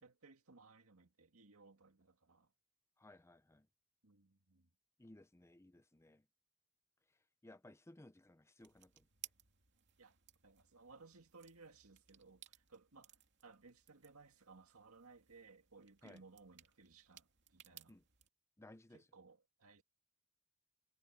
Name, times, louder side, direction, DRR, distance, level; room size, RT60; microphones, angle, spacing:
voice 1, 0.0-2.5 4.0-4.7 10.0-10.2 10.4-17.9 18.9-19.8, right 4 dB, 70° right, 2.1 m, -62 dB
voice 2, 3.0-3.7 5.0-6.3 7.4-9.1 16.0-16.2 17.9-18.0 18.6-19.1, left 1 dB, 10° left, 0.6 m, -60 dB
sound 1, 8.6-18.3, right 12 dB, 55° right, 2.5 m, -62 dB
head